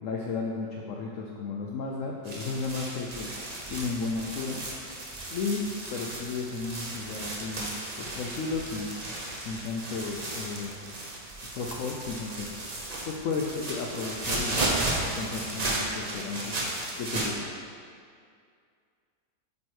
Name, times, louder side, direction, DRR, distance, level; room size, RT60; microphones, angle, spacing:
voice 1, 0.0-3.3 3.7-4.6 5.3-7.7 8.0-8.9 9.4-10.8 11.6-12.5 13.1-14.6 15.0-17.4, left 4 dB, 80° left, -1 dB, 0.7 m, -33 dB
sound 1, 2.2-17.3, right 2 dB, 65° right, 0.4 m, -34 dB
8.3 x 3.2 x 4.6 m, 2.2 s
omnidirectional pair, 1.9 m